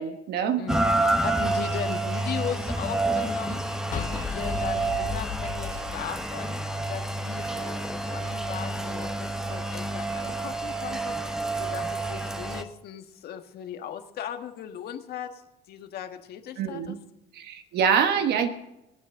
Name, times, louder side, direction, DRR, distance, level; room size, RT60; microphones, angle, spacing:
voice 1, 0.0-0.7 16.6-17.0 17.3-18.5, right 7 dB, 75° right, 8 dB, 1.3 m, -25 dB
voice 2, 0.6-6.6 6.9-17.0, left 9 dB, 70° left, 6 dB, 1.6 m, -38 dB
Rain, 0.7-12.6, right 2 dB, 5° right, 1.2 m, -29 dB
sound 1, 3.9-7.1, left 8 dB, 50° left, 1.2 m, -35 dB
24.5 x 8.5 x 3.8 m, 0.93 s
cardioid pair, 110°, 17 cm